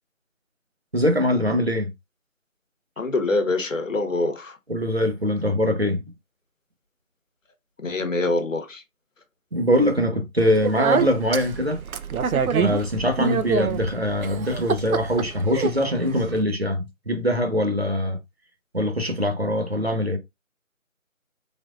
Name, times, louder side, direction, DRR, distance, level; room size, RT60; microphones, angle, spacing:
voice 1, 0.9-1.9 4.7-6.0 9.5-11.8 12.6-18.2 18.7-20.2, equal, 50° right, 0.6 m, -23 dB
voice 2, 3.0-4.6 7.8-8.8, left 2 dB, 65° left, 0.9 m, -25 dB
Speech, 10.4-16.4, right 6 dB, 90° right, 0.5 m, -27 dB
3.3 x 2.5 x 2.4 m
figure-of-eight pair, 175°, 41 cm